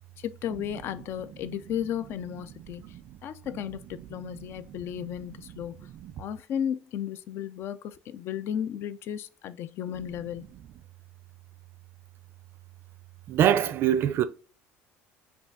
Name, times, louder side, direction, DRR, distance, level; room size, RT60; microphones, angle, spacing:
voice 1, 0.2-2.9 3.2-5.9 6.2-10.5, left 9 dB, 50° left, 0.5 m, -34 dB
voice 2, 13.3-14.2, right 10 dB, 45° right, 0.5 m, -24 dB
5.7 x 2.4 x 3.8 m
cardioid pair, 140°, 5 cm